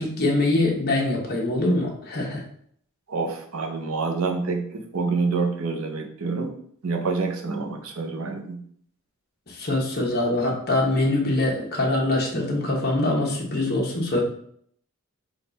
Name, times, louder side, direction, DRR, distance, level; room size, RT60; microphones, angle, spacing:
voice 1, 0.0-2.4 9.5-14.2, left 2 dB, 45° left, -2 dB, 0.9 m, -23 dB
voice 2, 3.1-6.5 6.8-8.6, right 4 dB, 70° right, 3 dB, 0.6 m, -27 dB
3.6 x 2.3 x 3.9 m, 0.65 s
head